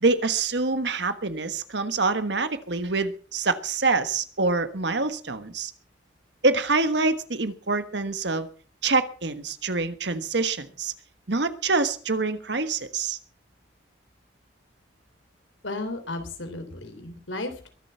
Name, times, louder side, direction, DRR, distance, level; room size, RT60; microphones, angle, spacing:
voice 1, 0.0-5.7 6.4-8.5 8.8-10.9 11.3-13.2, right 3 dB, 65° right, 11 dB, 1.4 m, -25 dB
voice 2, 15.6-17.7, left 2 dB, 85° left, 7 dB, 3.5 m, -34 dB
22.5 x 7.8 x 5.7 m, 0.40 s
head